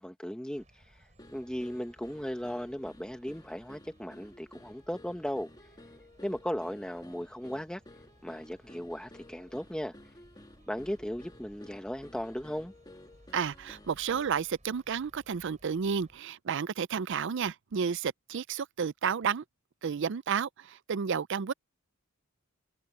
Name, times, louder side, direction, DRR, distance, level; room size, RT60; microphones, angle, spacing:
voice 1, 0.0-5.5 6.2-7.8 8.2-10.0 10.7-12.7, equal, 5° left, 1.0 m, -37 dB
sound 1, 0.5-16.2, right 1 dB, 35° right, 7.1 m, -61 dB
sound 2, 1.2-14.5, left 1 dB, 20° left, 2.7 m, -54 dB
voice 2, 13.3-19.4 19.8-21.5, right 6 dB, 60° right, 0.5 m, -31 dB
head